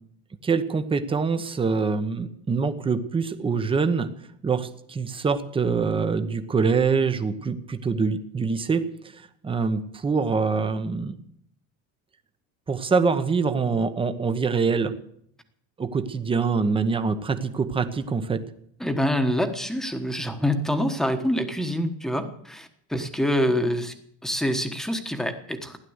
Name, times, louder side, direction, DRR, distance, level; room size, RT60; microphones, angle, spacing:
voice 1, 0.4-4.1 4.4-8.8 9.1-11.2 12.7-14.9 15.8-18.4, right 5 dB, 15° right, 9 dB, 1.0 m, -24 dB
voice 2, 18.8-23.9 24.2-25.8, equal, ahead, 7 dB, 1.3 m, -26 dB
16.0 x 11.0 x 8.1 m, 0.69 s
cardioid pair, 160°, 36 cm